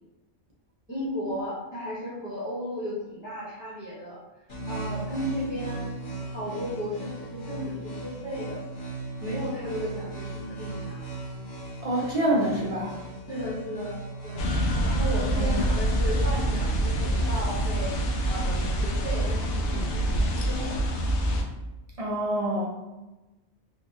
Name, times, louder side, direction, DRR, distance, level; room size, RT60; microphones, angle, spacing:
voice 1, 0.9-4.2 4.7-5.9 6.2-8.6 9.2-11.0 13.3-14.5 14.8-17.9 18.3-20.0 20.3-20.8, equal, 10° right, -9 dB, 0.9 m, -34 dB
sound 1, 4.5-20.8, right 2 dB, 40° left, 1.3 m, -38 dB
voice 2, 11.8-13.0 15.3-15.6 22.0-22.7, right 1 dB, 45° right, -3 dB, 0.4 m, -26 dB
sound 2, 14.4-21.4, right 1 dB, 70° left, 0.8 m, -26 dB
3.5 x 2.4 x 2.8 m, 1.1 s
omnidirectional pair, 1.3 m